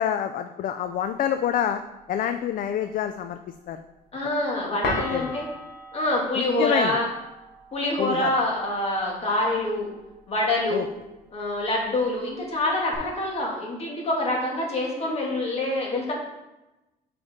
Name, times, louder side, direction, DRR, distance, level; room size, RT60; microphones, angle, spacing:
voice 1, 0.0-1.8 2.1-3.4 3.7-3.8 4.9-5.3 6.4-7.0 8.0-8.3 10.7-10.9, left 9 dB, 55° left, 9 dB, 0.4 m, -27 dB
sound 1, 0.7-12.9, left 2 dB, 70° left, 1.7 m, -40 dB
voice 2, 4.1-5.4 5.9-7.1 7.7-9.9 10.3-10.9 11.3-16.1, left 1 dB, 35° left, -2 dB, 2.3 m, -26 dB
7.8 x 5.1 x 3.7 m, 0.99 s
cardioid pair, 110°, 17 cm